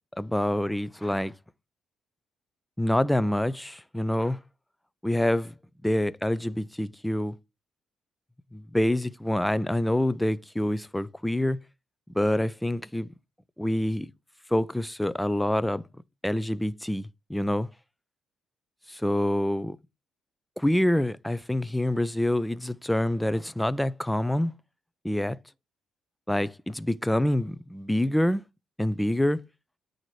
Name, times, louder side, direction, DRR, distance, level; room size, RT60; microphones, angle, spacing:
voice 1, 0.2-1.3 2.8-4.4 5.0-5.5 5.8-7.4 8.5-11.6 12.1-13.1 13.6-14.1 14.5-15.8 16.2-17.7 18.9-19.8 20.6-24.5 25.0-25.4 26.3-28.4 28.8-29.4, left 1 dB, 5° left, 0.4 m, -26 dB
9.1 x 3.9 x 3.1 m
cardioid pair, 90°, 0 cm